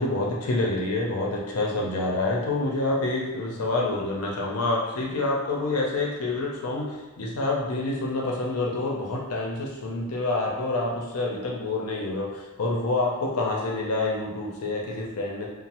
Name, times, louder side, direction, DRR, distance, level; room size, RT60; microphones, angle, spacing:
voice 1, 0.0-15.5, left 2 dB, 80° left, -2 dB, 0.5 m, -27 dB
3.0 x 2.0 x 2.8 m, 1.1 s
head